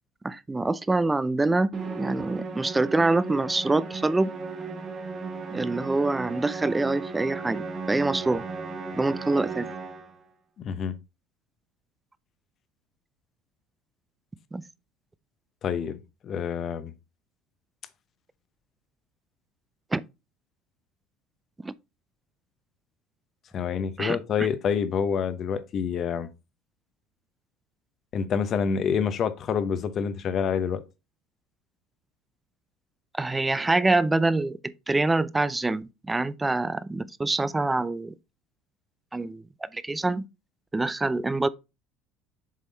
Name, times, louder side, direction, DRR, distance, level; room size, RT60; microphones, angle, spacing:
voice 1, 0.2-1.7 2.0-4.3 5.5-8.4 8.9-9.7 14.5-14.6 19.9-20.0 21.6-21.7 24.0-24.5 33.1-38.1 39.1-40.2 40.7-41.5, right 2 dB, 10° right, 0.4 m, -25 dB
Musical instrument, 1.7-10.2, right 4 dB, 30° right, 1.4 m, -36 dB
voice 2, 15.6-16.0 16.2-16.9 23.5-26.3 28.1-30.8, left 7 dB, 45° left, 0.8 m, -27 dB
7.5 x 3.6 x 4.0 m
supercardioid pair, 115°, 0 cm